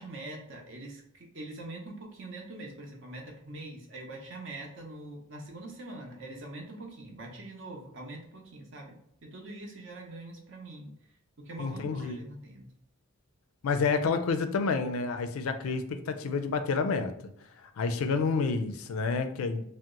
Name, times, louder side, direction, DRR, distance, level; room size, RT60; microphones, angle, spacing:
voice 1, 0.0-10.9 11.4-12.7, right 2 dB, 60° right, 0.7 m, -43 dB
voice 2, 11.6-12.2 13.6-17.1 17.6-19.6, left 4 dB, 75° left, 0.4 m, -29 dB
2.8 x 2.0 x 3.7 m
head